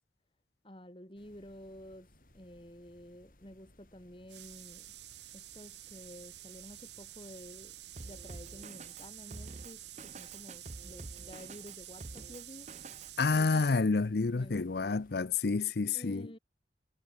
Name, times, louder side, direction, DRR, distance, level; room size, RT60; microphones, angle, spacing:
voice 1, 0.6-2.1 2.3-4.9 5.3-7.8 8.0-12.7 14.3-14.7 15.9-16.4, equal, 30° left, 4.9 m, -51 dB
sound 1, 1.2-15.3, left 1 dB, 50° left, 6.6 m, -63 dB
sound 2, 4.3-13.8, right 14 dB, 80° right, 2.0 m, -50 dB
Drum kit, 8.0-13.3, right 2 dB, 40° right, 0.9 m, -48 dB
voice 2, 13.2-16.3, left 4 dB, 65° left, 0.6 m, -29 dB
head